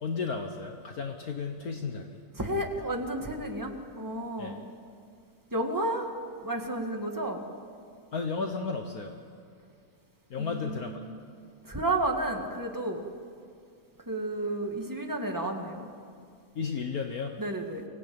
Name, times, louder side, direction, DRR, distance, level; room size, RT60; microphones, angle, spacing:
voice 1, 0.0-2.2 4.4-4.5 8.1-9.1 10.3-10.9 16.5-17.4, left 5 dB, 60° left, 4 dB, 1.6 m, -33 dB
voice 2, 2.4-4.6 5.5-6.1 6.4-7.5 10.4-11.1 11.7-13.0 14.1-15.9 17.4-17.9, right 1 dB, 10° right, 3 dB, 1.9 m, -32 dB
24.0 x 17.5 x 8.8 m, 2.2 s
omnidirectional pair, 1.9 m